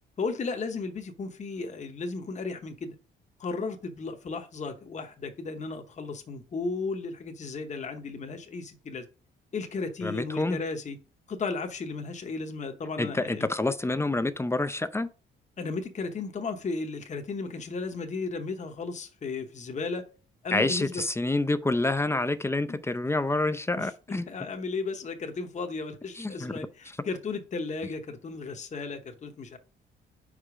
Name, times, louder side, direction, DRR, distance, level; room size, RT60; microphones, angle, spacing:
voice 1, 0.2-2.9 3.4-9.1 9.5-11.0 11.3-13.5 15.6-20.1 20.4-21.0 22.7-22.8 23.8-29.6, left 4 dB, 35° left, 0.9 m, -35 dB
voice 2, 10.0-10.6 13.0-15.1 20.5-24.3 26.1-26.5, left 2 dB, 15° left, 0.5 m, -27 dB
5.0 x 4.4 x 4.8 m
cardioid pair, 90°, 20 cm